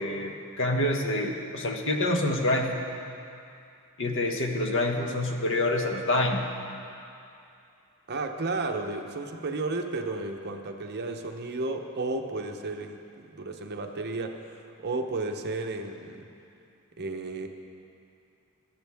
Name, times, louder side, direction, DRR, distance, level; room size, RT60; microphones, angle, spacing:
voice 1, 0.0-2.7 4.0-6.4, left 1 dB, 60° left, 3 dB, 1.1 m, -27 dB
voice 2, 8.1-16.3 17.0-17.5, right 3 dB, 45° right, 4 dB, 0.8 m, -33 dB
18.0 x 12.5 x 3.5 m, 2.6 s
head